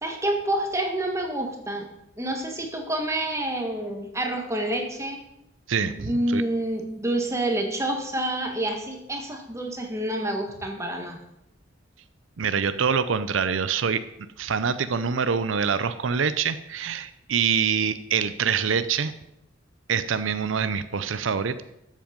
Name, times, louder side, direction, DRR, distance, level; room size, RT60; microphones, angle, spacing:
voice 1, 0.0-1.9 2.2-5.2 5.8-11.2, right 1 dB, 15° right, 3 dB, 1.6 m, -28 dB
voice 2, 5.7-6.4 12.4-14.0 14.4-19.1 19.9-21.6, right 6 dB, 85° right, 12 dB, 0.6 m, -25 dB
12.5 x 7.5 x 5.2 m, 0.82 s
head